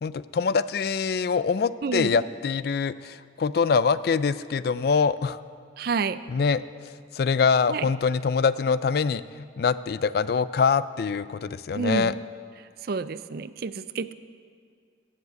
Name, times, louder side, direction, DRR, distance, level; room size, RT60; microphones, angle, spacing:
voice 1, 0.0-5.4 6.3-6.6 7.1-9.2 9.6-12.1, left 5 dB, 55° left, 16 dB, 0.3 m, -24 dB
voice 2, 1.8-2.2 5.8-6.2 7.7-7.9 11.7-12.1 12.8-14.1, right 4 dB, 55° right, 14 dB, 0.4 m, -29 dB
14.5 x 7.3 x 8.1 m, 2.1 s
head